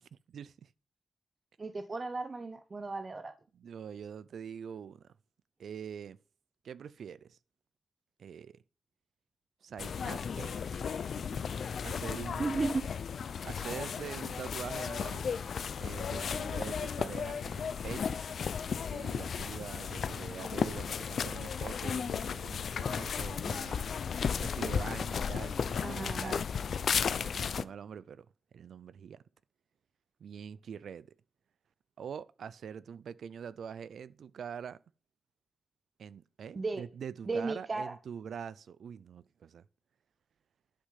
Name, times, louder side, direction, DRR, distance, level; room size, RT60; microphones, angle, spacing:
voice 1, 0.0-0.7 3.5-5.1 5.6-6.2 6.6-7.4 8.2-8.6 9.6-10.8 11.2-11.4 11.8-12.6 13.4-15.5 15.8-18.2 18.8-24.0 24.4-26.5 27.2-28.3 28.5-29.2 30.2-31.1 32.0-34.8 36.0-39.6, right 7 dB, 90° right, 0.5 m, -44 dB
voice 2, 1.6-3.3 12.4-12.9 25.8-26.4 36.6-36.8 37.2-37.9, right 3 dB, 35° right, 0.9 m, -35 dB
sound 1, 9.8-27.6, left 6 dB, 75° left, 0.6 m, -34 dB
11.5 x 6.4 x 5.8 m
wide cardioid pair, 110°, 0 cm